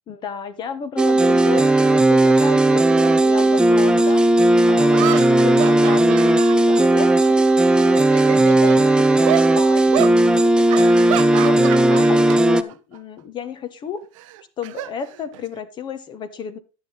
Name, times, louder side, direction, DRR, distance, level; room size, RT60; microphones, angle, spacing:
voice 1, 0.1-7.4 8.2-11.0 11.4-14.0 14.6-16.6, left 6 dB, 30° left, 1.1 m, -33 dB
sound 1, 1.0-12.6, right 2 dB, 5° right, 0.5 m, -15 dB
sound 2, 4.1-4.2 4.9-7.5 7.9-8.8 9.3-9.5 9.9-10.2 10.7-12.4 12.7-13.0 14.2-15.6, right 15 dB, 75° right, 0.7 m, -29 dB
11.0 x 9.2 x 3.8 m
supercardioid pair, 150°, 17 cm